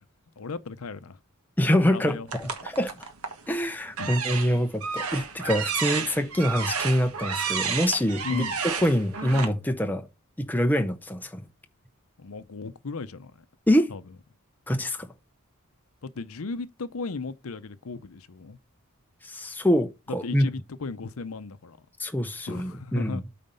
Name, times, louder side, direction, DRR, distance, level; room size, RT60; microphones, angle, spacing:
voice 1, 0.4-1.2 1.9-2.3 4.0-4.2 8.2-8.6 12.2-13.3 13.9-14.0 16.0-18.6 20.1-21.8 22.5-23.2, left 4 dB, 70° left, 0.7 m, -36 dB
voice 2, 1.6-2.9 3.5-10.1 10.4-11.4 13.7-13.9 14.7-15.1 19.2-20.5 22.0-23.2, equal, 10° left, 0.6 m, -25 dB
sound 1, 2.3-3.4 3.9-9.4, right 6 dB, 75° right, 1.4 m, -31 dB
9.1 x 4.3 x 5.5 m
head